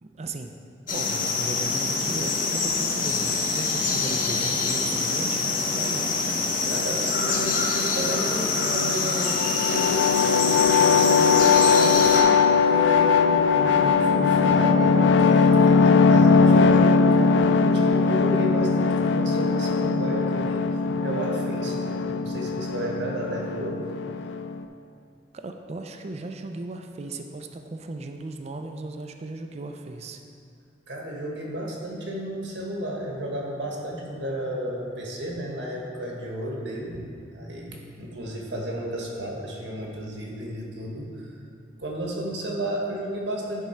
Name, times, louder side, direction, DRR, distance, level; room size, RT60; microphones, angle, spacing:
voice 1, 0.0-0.6 0.9-6.0 25.3-30.2, right 2 dB, 40° right, 5 dB, 0.4 m, -36 dB
sound 1, 0.9-12.2, left 4 dB, 50° left, 0.8 m, -25 dB
voice 2, 6.7-9.4 9.7-23.8 30.9-37.0 37.3-41.3 41.8-43.7, equal, 85° right, -1 dB, 1.3 m, -32 dB
sound 2, 9.2-24.6, left 5 dB, 90° left, 0.3 m, -20 dB
10.0 x 3.7 x 4.3 m, 2.5 s
head